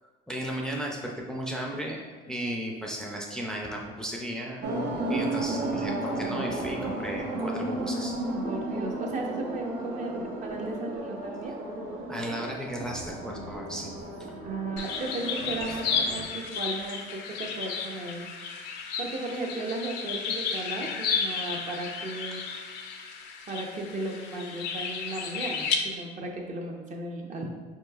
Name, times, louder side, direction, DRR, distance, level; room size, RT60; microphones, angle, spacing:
voice 1, 0.3-4.7 5.0-8.2 12.1-13.9 22.3-22.4, equal, 5° left, -1 dB, 0.4 m, -35 dB
sound 1, 4.6-16.2, right 2 dB, 85° right, 0.7 m, -33 dB
voice 2, 8.4-11.5 14.4-18.3 18.7-22.4 23.5-27.5, right 2 dB, 45° right, 1 dB, 0.6 m, -35 dB
sound 2, 14.8-25.8, left 6 dB, 85° left, 0.5 m, -33 dB
4.5 x 3.0 x 2.3 m, 1.4 s
cardioid pair, 110°, 17 cm